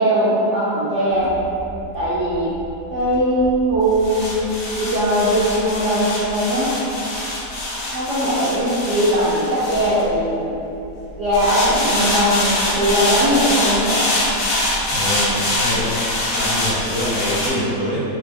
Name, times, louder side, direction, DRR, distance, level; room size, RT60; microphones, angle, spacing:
voice 1, 0.0-1.3 1.9-2.5 2.9-4.4 4.7-6.7 7.9-10.5 11.2-14.1, equal, 70° right, -10 dB, 0.7 m, -19 dB
sound 1, 1.2-10.6 11.3-17.5, left 1 dB, 85° left, 1.3 m, -24 dB
voice 2, 14.9-15.9 16.3-18.1, equal, 55° left, -13 dB, 0.5 m, -24 dB
2.9 x 2.1 x 3.3 m, 2.8 s
omnidirectional pair, 1.8 m